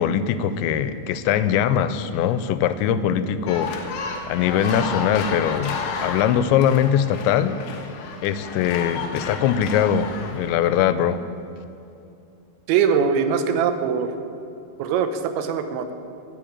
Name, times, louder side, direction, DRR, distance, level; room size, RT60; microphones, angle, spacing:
voice 1, 0.0-3.7 4.3-7.6 8.2-11.2, left 9 dB, 90° left, 12 dB, 2.9 m, -21 dB
sound 1, 3.5-10.6, left 5 dB, 65° left, 2.1 m, -32 dB
voice 2, 12.7-14.1 14.8-15.9, right 6 dB, 90° right, 8 dB, 3.2 m, -22 dB
13.5 x 7.6 x 8.7 m, 2.6 s
omnidirectional pair, 5.1 m